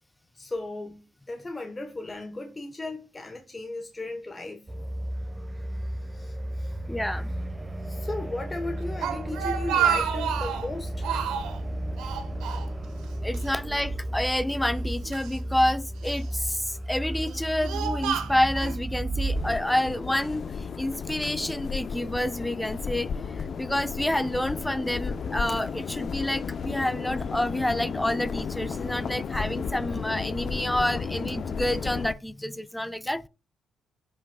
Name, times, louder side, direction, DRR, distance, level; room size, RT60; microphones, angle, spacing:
voice 1, 0.3-4.7 5.9-6.8 7.8-11.1, left 2 dB, 20° left, 1.0 m, -36 dB
sound 1, 4.7-19.6, right 1 dB, 20° right, 1.0 m, -33 dB
voice 2, 6.9-7.3 13.2-33.3, left 1 dB, 5° left, 0.5 m, -28 dB
Speech, 8.8-10.7 11.0-11.6 12.0-13.1 13.3-13.5 14.3-15.3 16.0-16.5 17.1-18.8, right 8 dB, 85° right, 1.3 m, -29 dB
sound 2, 19.3-32.1, left 6 dB, 50° left, 0.5 m, -33 dB
15.0 x 6.0 x 2.2 m
cardioid pair, 90°, 0 cm